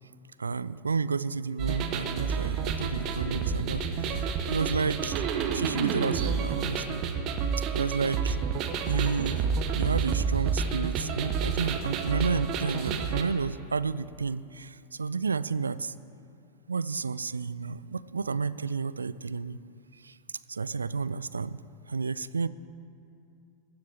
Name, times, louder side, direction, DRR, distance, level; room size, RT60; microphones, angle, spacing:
voice 1, 0.4-4.2 4.5-5.2 5.5-7.0 7.6-8.4 8.9-9.5 9.7-15.9 16.7-19.6 20.0-20.2 20.5-21.6 21.9-22.5, right 5 dB, 75° right, 17 dB, 0.3 m, -31 dB
sound 1, 1.6-13.2, right 6 dB, 40° right, 1.1 m, -29 dB
21.0 x 10.5 x 3.6 m, 2.6 s
figure-of-eight pair, 90°, 0 cm